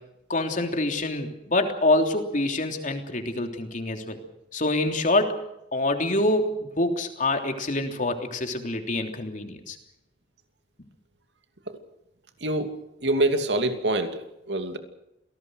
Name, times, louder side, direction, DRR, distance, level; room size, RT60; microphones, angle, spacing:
voice 1, 0.3-4.2 4.5-5.4 5.7-9.8, left 2 dB, 50° left, 5 dB, 3.3 m, -26 dB
voice 2, 13.0-14.8, right 1 dB, 75° right, 7 dB, 2.7 m, -25 dB
27.5 x 18.5 x 6.5 m, 0.84 s
head